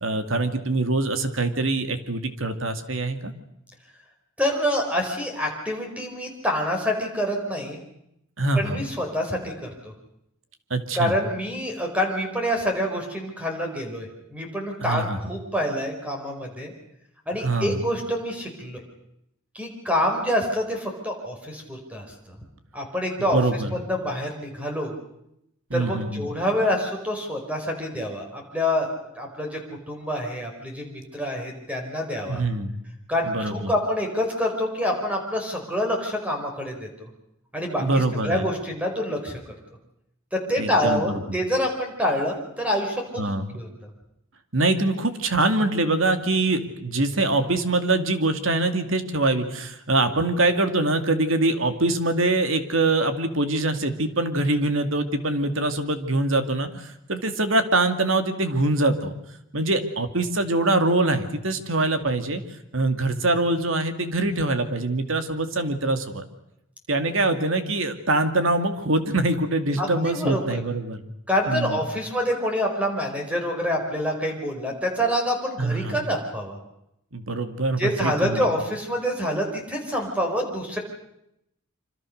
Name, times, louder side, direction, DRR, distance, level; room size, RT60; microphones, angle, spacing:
voice 1, 0.0-3.3 8.4-8.8 10.7-11.2 14.8-15.2 17.4-17.8 23.3-23.7 25.7-26.3 32.3-32.8 33.2-33.7 37.8-38.5 40.6-41.4 43.2-43.6 44.5-59.1 59.5-62.4 62.7-66.2 66.9-71.0 71.5-71.8 75.6-76.0 77.1-78.5, right 2 dB, 70° right, 8 dB, 2.5 m, -24 dB
voice 2, 4.4-7.8 8.5-9.9 10.9-16.7 17.3-18.8 19.5-22.1 22.7-23.4 23.7-24.9 25.7-28.9 29.2-29.6 29.9-32.4 33.1-37.1 37.5-39.4 40.3-43.2 43.5-43.7 69.8-70.6 71.3-76.6 77.8-80.8, equal, 5° right, 2 dB, 4.8 m, -26 dB
26.0 x 26.0 x 6.6 m, 0.80 s
head